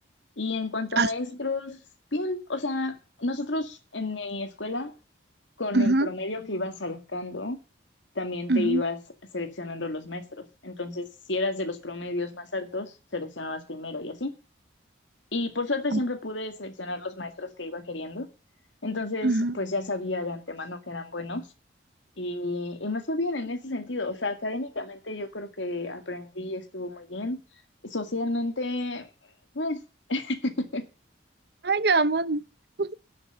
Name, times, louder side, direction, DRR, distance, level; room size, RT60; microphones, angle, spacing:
voice 1, 0.4-1.8 2.1-4.9 5.6-7.6 8.2-9.0 9.3-14.3 15.3-18.3 18.8-21.4 22.2-27.4 27.9-29.1 29.5-29.8 30.1-30.8, left 2 dB, 75° left, 2.1 m, -31 dB
voice 2, 5.7-6.1 8.5-8.8 15.9-16.0 19.2-19.6 31.6-32.4 32.8-32.9, right 3 dB, 55° right, 0.7 m, -23 dB
11.5 x 6.2 x 8.0 m
head